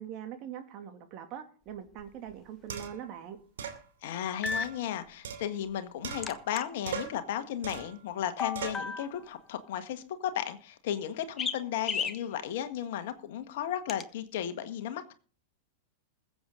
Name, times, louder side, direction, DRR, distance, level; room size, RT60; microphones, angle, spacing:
voice 1, 0.0-3.4, right 9 dB, 45° right, 5 dB, 2.5 m, -42 dB
sound 1, 2.0-2.1 2.7-3.1 3.6-3.8 4.5-5.7 6.0-6.6 6.9-7.3 7.6-8.0 8.5-8.9, right 6 dB, 70° right, 2.7 m, -40 dB
sound 2, 2.3-2.4 4.4-4.7 6.2-6.6 8.4-9.2 11.4-11.6 11.9-12.2 13.9-14.0, left 5 dB, 25° left, 1.2 m, -33 dB
voice 2, 4.0-15.1, left 10 dB, 60° left, 9 dB, 1.6 m, -35 dB
21.5 x 7.9 x 3.9 m, 0.40 s
figure-of-eight pair, 95°, 0 cm